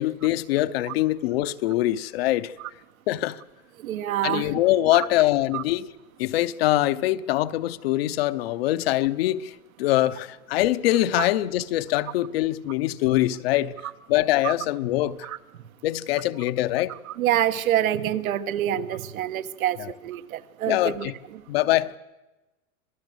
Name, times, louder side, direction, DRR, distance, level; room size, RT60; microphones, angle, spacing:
voice 1, 0.0-2.5 3.1-3.4 4.2-5.9 6.2-13.8 14.1-15.3 15.8-17.0 19.8-19.9 20.7-21.1 21.5-21.9, left 15 dB, 45° left, 0.8 m, -23 dB
voice 2, 3.8-4.6 4.9-5.0 5.5-5.6 14.4-14.5 15.2-15.4 17.1-21.4, right 12 dB, 80° right, 1.6 m, -27 dB
26.5 x 18.5 x 8.0 m
supercardioid pair, 170°, 42 cm